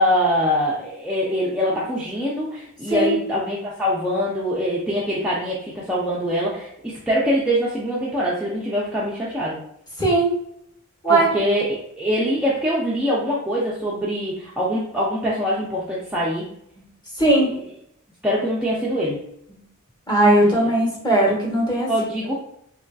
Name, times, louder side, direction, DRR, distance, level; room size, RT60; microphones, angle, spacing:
voice 1, 0.0-9.6 11.1-16.5 17.3-17.6 18.2-19.2 20.4-20.6 21.9-22.3, equal, 5° right, -7 dB, 0.4 m, -23 dB
voice 2, 10.0-10.3 11.0-11.3 16.8-16.9 17.2-17.5 20.1-21.9, right 2 dB, 20° left, -4 dB, 0.9 m, -18 dB
3.1 x 2.5 x 2.2 m, 0.72 s
head